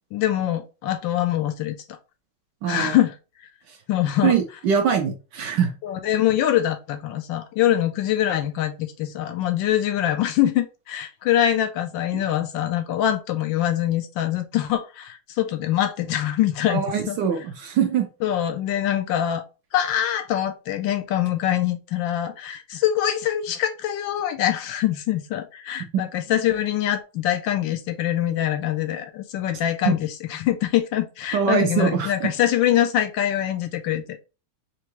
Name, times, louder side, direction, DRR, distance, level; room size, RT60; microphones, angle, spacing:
voice 1, 0.1-1.8 2.7-3.1 3.9-4.4 5.8-17.2 18.2-19.4 19.7-34.2, left 11 dB, 75° left, 1.1 m, -24 dB
voice 2, 2.6-3.0 3.7-3.8 4.2-5.7 16.7-18.1 25.9-26.0 31.3-32.3, right 7 dB, 70° right, 1.1 m, -23 dB
4.6 x 3.0 x 3.0 m
omnidirectional pair, 2.4 m